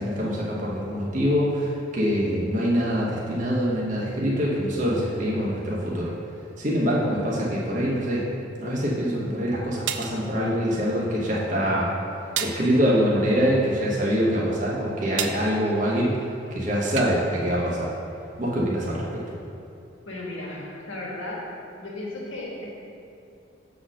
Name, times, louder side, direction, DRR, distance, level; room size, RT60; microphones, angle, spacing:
voice 1, 0.0-6.1 6.6-8.2 8.6-11.9 12.4-16.2 16.5-17.9 18.4-19.1, equal, 40° right, -5 dB, 1.1 m, -24 dB
sound 1, 9.9-10.2 12.4-12.7 15.2-15.5 17.0-17.2, right 8 dB, 75° right, 0.5 m, -29 dB
voice 2, 20.0-21.4 21.8-22.7, left 1 dB, 90° left, -4 dB, 1.7 m, -35 dB
6.9 x 4.2 x 6.2 m, 2.6 s
head